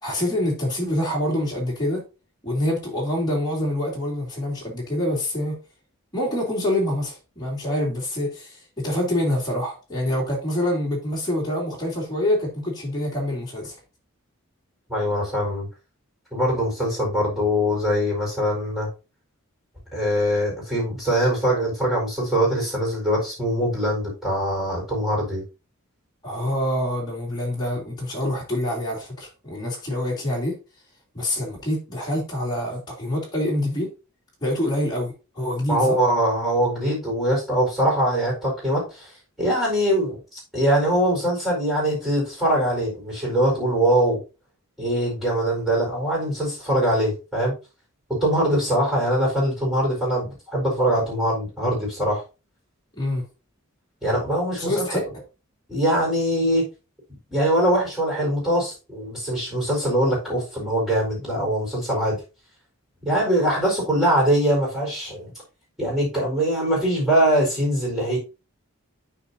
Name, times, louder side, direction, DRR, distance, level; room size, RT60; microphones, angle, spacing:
voice 1, 0.0-2.0 2.4-5.6 6.1-13.7 26.2-30.6 31.1-33.9 34.4-36.0 52.9-53.3 54.6-55.0, left 1 dB, 20° left, 3.3 m, -26 dB
voice 2, 14.9-15.7 16.3-18.9 19.9-25.4 35.7-39.1 39.4-44.2 44.8-47.5 48.1-52.2 54.0-55.0 55.7-56.6 57.3-62.2 63.0-65.3 65.8-68.2, right 1 dB, ahead, 4.6 m, -22 dB
12.5 x 4.8 x 2.7 m
head